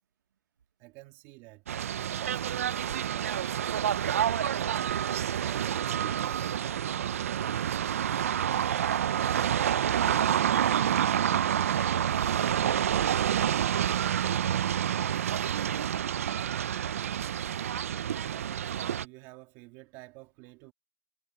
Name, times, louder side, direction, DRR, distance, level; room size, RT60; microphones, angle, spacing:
voice 1, 0.8-1.6 1.9-3.8 4.2-5.0 5.3-7.7 18.2-20.7, right 22 dB, 20° right, 3.2 m, -50 dB
sound 1, 1.7-19.1, right 9 dB, 45° right, 0.6 m, -28 dB
voice 2, 9.1-11.2 12.4-13.9, right 8 dB, 65° right, 1.0 m, -48 dB
hypercardioid pair, 170°, 10 cm